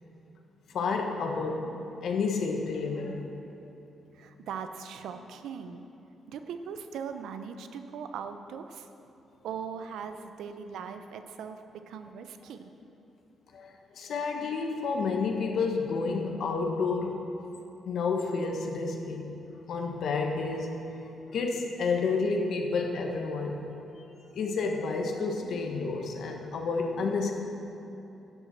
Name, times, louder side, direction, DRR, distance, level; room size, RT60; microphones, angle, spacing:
voice 1, 0.7-3.3 13.5-17.2 17.8-20.9 21.3-24.0 24.3-27.3, left 4 dB, 70° left, 3 dB, 1.3 m, -30 dB
voice 2, 4.1-5.8 6.3-8.9 9.4-12.7, right 6 dB, 85° right, 8 dB, 0.7 m, -40 dB
11.0 x 7.5 x 7.2 m, 2.9 s
cardioid pair, 110°, 0 cm